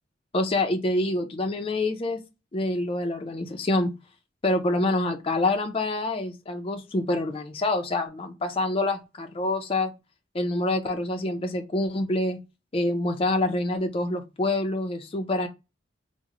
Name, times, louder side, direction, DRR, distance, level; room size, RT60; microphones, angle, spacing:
voice 1, 0.3-2.2 2.5-3.9 4.4-9.9 10.3-12.4 12.7-15.5, left 2 dB, 30° left, 0.4 m, -26 dB
3.6 x 2.1 x 2.9 m
head